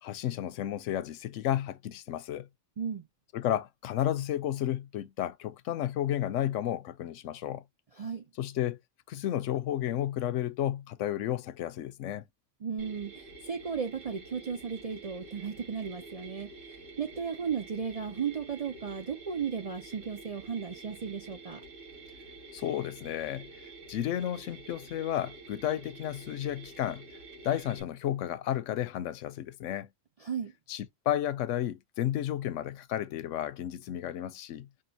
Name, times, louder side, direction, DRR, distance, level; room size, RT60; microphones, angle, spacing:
voice 1, 0.0-2.5 3.3-7.6 8.4-8.8 9.1-12.2 22.5-23.5 23.9-27.0 27.4-29.9 30.7-34.7, left 12 dB, 80° left, 0.9 m, -32 dB
voice 2, 12.6-13.1 13.4-16.5 17.0-21.6 30.2-30.5, right 6 dB, 50° right, 0.4 m, -35 dB
Mechanisms, 12.8-27.8, right 3 dB, 80° right, 2.5 m, -49 dB
5.5 x 2.7 x 2.7 m
omnidirectional pair, 1.3 m